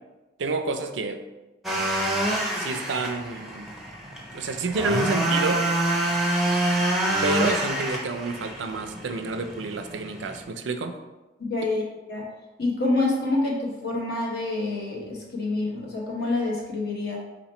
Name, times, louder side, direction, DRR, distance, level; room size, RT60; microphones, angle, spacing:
voice 1, 0.4-1.2 2.6-3.7 4.3-5.6 7.2-10.9, right 3 dB, 75° right, 7 dB, 0.4 m, -29 dB
sound 1, 1.6-10.4, right 1 dB, ahead, 0.6 m, -27 dB
voice 2, 11.4-12.2 12.6-17.2, left 2 dB, 55° left, -2 dB, 1.1 m, -27 dB
4.3 x 2.9 x 4.2 m, 1.1 s
head